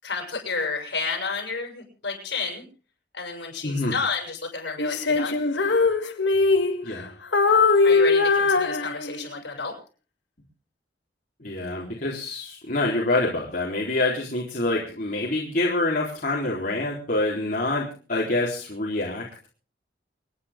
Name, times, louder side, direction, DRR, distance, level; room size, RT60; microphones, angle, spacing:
voice 1, 0.0-2.6 3.1-5.4 7.8-9.7, left 4 dB, 70° left, 2 dB, 7.2 m, -31 dB
voice 2, 3.6-3.9 6.8-7.1 11.4-19.5, left 2 dB, 50° left, -5 dB, 4.0 m, -26 dB
Female singing, 4.8-7.0 7.3-9.4, left 4 dB, 85° left, 1.7 m, -21 dB
28.5 x 10.0 x 3.8 m, 0.37 s
head